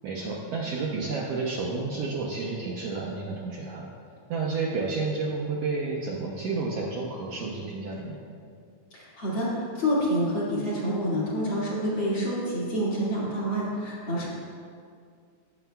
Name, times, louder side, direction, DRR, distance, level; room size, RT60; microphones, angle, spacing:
voice 1, 0.0-3.9 4.3-8.2, right 3 dB, 70° right, -3 dB, 1.6 m, -31 dB
voice 2, 8.9-14.3, equal, 45° left, -8 dB, 2.6 m, -27 dB
16.5 x 7.0 x 2.3 m, 2.2 s
omnidirectional pair, 3.5 m